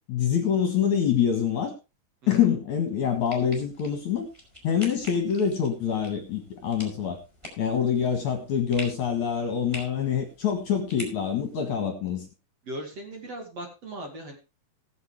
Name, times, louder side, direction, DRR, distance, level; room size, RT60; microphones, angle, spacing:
voice 1, 0.1-1.7 2.3-4.3 4.6-7.2 7.6-12.3, left 8 dB, 55° left, 4 dB, 2.6 m, -25 dB
sound 1, 3.1-11.8, left 2 dB, 5° right, 4.4 m, -46 dB
voice 2, 12.6-14.4, right 1 dB, 45° right, 2 dB, 2.9 m, -38 dB
18.5 x 8.0 x 3.4 m, 0.28 s
omnidirectional pair, 4.8 m